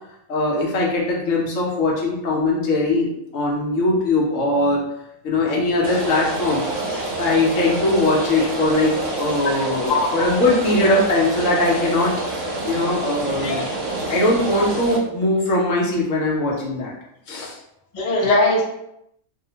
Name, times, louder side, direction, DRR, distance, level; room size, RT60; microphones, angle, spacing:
voice 1, 0.3-4.8 5.2-6.6 7.2-12.1 12.7-13.6 14.1-16.9 17.3-17.6, left 2 dB, 70° left, -3 dB, 1.0 m, -20 dB
Rain, 5.8-15.0, right 2 dB, 65° right, 1.0 m, -27 dB
voice 2, 9.9-10.3 13.4-13.6 17.9-18.6, left 2 dB, 50° left, -4 dB, 0.5 m, -20 dB
2.8 x 2.0 x 2.7 m, 0.80 s
omnidirectional pair, 1.5 m